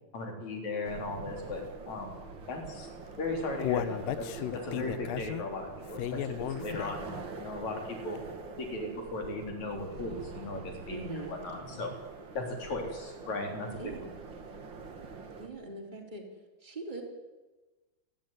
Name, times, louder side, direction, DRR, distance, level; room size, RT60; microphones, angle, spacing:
voice 1, 0.1-2.9 3.2-6.3 6.6-8.2 8.6-10.6 10.9-11.9 12.3-14.1, left 2 dB, 50° left, 2 dB, 5.0 m, -37 dB
sound 1, 0.8-15.5, right 4 dB, 45° right, 1.7 m, -45 dB
Human voice, 3.0-7.2 7.6-7.7 8.1-8.2, left 12 dB, 75° left, 2.3 m, -35 dB
voice 2, 6.6-6.9 10.9-11.9 13.8-14.1 15.4-16.2 16.6-17.0, right 2 dB, 10° right, 0 dB, 3.5 m, -42 dB
30.0 x 11.5 x 9.5 m, 1.2 s
omnidirectional pair, 4.4 m